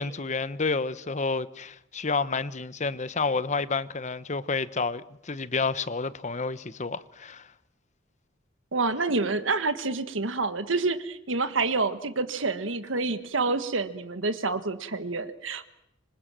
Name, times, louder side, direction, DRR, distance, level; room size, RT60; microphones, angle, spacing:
voice 1, 0.0-7.5, left 4 dB, 35° left, 1.0 m, -30 dB
voice 2, 8.7-15.7, right 3 dB, 75° right, 1.5 m, -28 dB
26.5 x 25.0 x 7.6 m
head